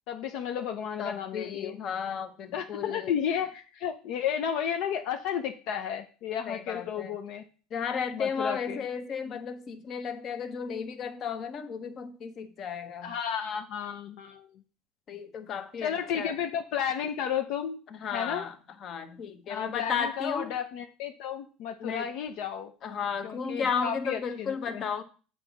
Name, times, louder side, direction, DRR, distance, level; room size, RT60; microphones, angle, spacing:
voice 1, 0.1-1.8 2.5-7.4 8.1-8.8 13.0-14.6 15.8-18.5 19.5-22.7 23.2-24.8, left 8 dB, 65° left, 6 dB, 0.7 m, -33 dB
voice 2, 1.0-3.1 6.5-7.1 7.7-13.1 15.1-16.4 17.9-18.5 18.8-20.5 21.8-22.1 22.8-25.0, left 6 dB, 40° left, 9 dB, 0.9 m, -34 dB
7.7 x 4.0 x 6.2 m, 0.38 s
cardioid pair, 140°, 0 cm